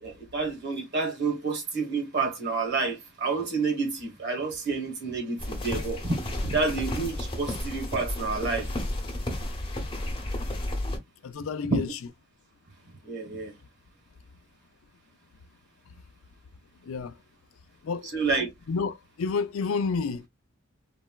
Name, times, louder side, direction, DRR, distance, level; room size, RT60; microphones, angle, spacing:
voice 1, 0.0-8.7 11.7-11.8 13.0-13.5 18.1-18.5, right 4 dB, 55° right, 1.3 m, -29 dB
sound 1, 5.4-11.0, left 1 dB, 25° left, 1.0 m, -32 dB
voice 2, 11.2-11.9 16.9-17.1 17.8-18.0 18.7-20.3, left 5 dB, 75° left, 0.4 m, -29 dB
4.0 x 2.2 x 2.2 m
head